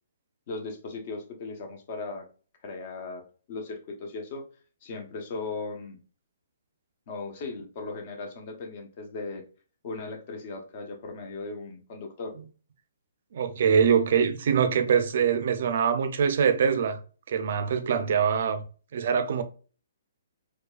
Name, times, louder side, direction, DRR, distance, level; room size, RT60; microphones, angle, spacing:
voice 1, 0.5-2.2 2.6-3.2 3.5-4.5 4.8-6.0 7.1-9.4 9.8-12.3, left 3 dB, 40° left, 0.9 m, -37 dB
voice 2, 13.3-17.0 17.3-18.6 18.9-19.4, right 7 dB, 55° right, 0.5 m, -23 dB
4.6 x 2.3 x 2.4 m
hypercardioid pair, 160°, 0 cm